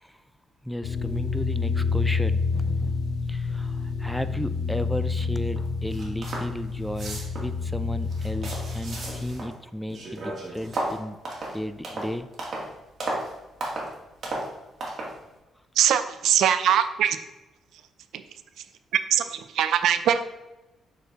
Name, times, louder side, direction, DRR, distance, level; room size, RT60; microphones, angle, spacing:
voice 1, 0.6-3.0 3.3-11.2 11.5-12.3, equal, 5° left, 12 dB, 0.4 m, -34 dB
sound 1, 0.8-9.3, left 4 dB, 80° left, 0.9 m, -28 dB
sound 2, 5.6-5.7 5.9-6.5 6.8-7.5 8.0-9.6 9.9-12.7 13.0-13.3 13.6-13.9 14.2-14.5 14.8-15.1, right 2 dB, 50° right, 1.9 m, -33 dB
voice 2, 15.8-17.2 18.1-18.2 18.6-18.7 18.9-20.3, right 9 dB, 75° right, 11 dB, 0.4 m, -22 dB
6.9 x 4.4 x 3.9 m, 1.0 s
cardioid pair, 90°, 0 cm